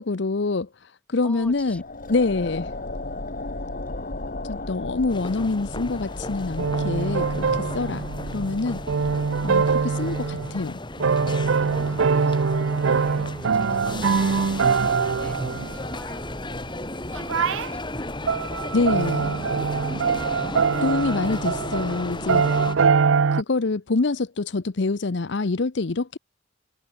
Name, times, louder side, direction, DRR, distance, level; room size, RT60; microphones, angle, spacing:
voice 1, 0.0-1.8 2.1-2.7 4.4-8.1 8.3-8.8 9.4-10.8 18.7-19.4 20.8-22.6 23.3-26.2, left 3 dB, 65° left, 0.7 m, -26 dB
voice 2, 1.2-1.8 2.3-2.6 11.6-21.3, equal, 5° left, 5.9 m, -47 dB
sound 1, 1.4-10.7, left 2 dB, 45° left, 2.0 m, -36 dB
sound 2, 5.1-22.8, left 1 dB, 25° left, 4.6 m, -34 dB
sound 3, 6.6-10.6 11.0-15.8 17.1-17.7 18.3-23.4, right 5 dB, 90° right, 0.6 m, -23 dB
head